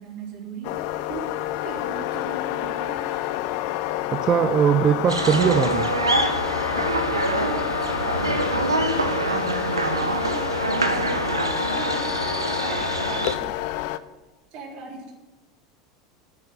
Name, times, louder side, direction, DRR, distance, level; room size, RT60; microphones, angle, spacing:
voice 1, 0.0-3.6 4.8-5.1 7.2-13.5 14.5-15.1, right 4 dB, 45° right, 0 dB, 3.8 m, -39 dB
sound 1, 0.6-14.0, left 15 dB, 55° left, 0.6 m, -29 dB
voice 2, 4.1-5.9, right 8 dB, 30° right, 13 dB, 0.5 m, -20 dB
sound 2, 5.1-13.4, right 2 dB, 85° right, 1.1 m, -25 dB
9.7 x 8.8 x 9.7 m, 1.1 s
figure-of-eight pair, 80°, 2 cm